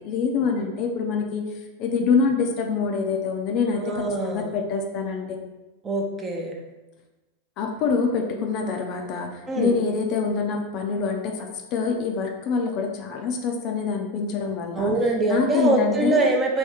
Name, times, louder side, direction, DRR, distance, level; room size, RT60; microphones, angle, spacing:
voice 1, 0.0-1.5 1.8-5.3 7.6-14.9 15.3-16.3, left 5 dB, 40° left, 3 dB, 0.5 m, -25 dB
voice 2, 3.8-4.5 5.8-6.5 9.5-9.7 14.7-16.6, right 2 dB, 20° right, 1 dB, 0.6 m, -23 dB
3.4 x 3.1 x 4.3 m, 1.1 s
figure-of-eight pair, 90°, 0 cm